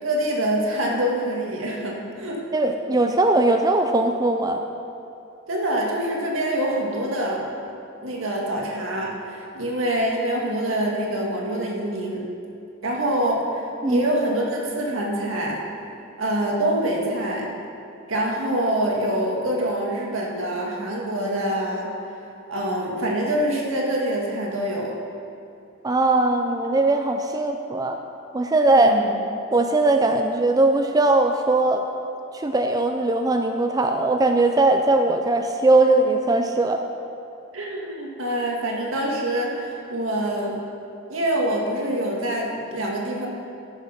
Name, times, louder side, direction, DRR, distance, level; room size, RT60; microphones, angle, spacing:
voice 1, 0.0-2.4 5.5-7.5 8.0-12.2 12.8-15.7 16.2-17.5 18.1-22.2 22.5-25.0 28.7-29.1 37.5-40.6 41.1-43.3, right 1 dB, 80° right, -1 dB, 2.0 m, -25 dB
voice 2, 2.5-4.6 13.8-14.0 25.8-28.0 28.3-28.9 29.5-31.8 32.3-36.8, right 2 dB, 20° right, 5 dB, 0.4 m, -20 dB
14.5 x 6.6 x 5.9 m, 2.7 s
head